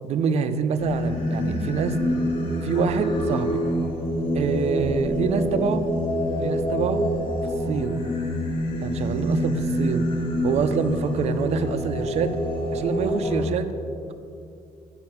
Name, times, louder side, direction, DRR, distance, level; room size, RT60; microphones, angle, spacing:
voice 1, 0.1-2.0 2.6-3.6 4.3-5.8 6.4-7.1 7.4-8.1 8.8-10.1 10.4-12.4 12.7-13.7, right 6 dB, 55° right, 10 dB, 0.5 m, -26 dB
Singing, 0.8-13.4, equal, 45° left, 1.3 m, -26 dB
7.8 x 5.6 x 5.8 m, 2.6 s
cardioid pair, 150°, 13 cm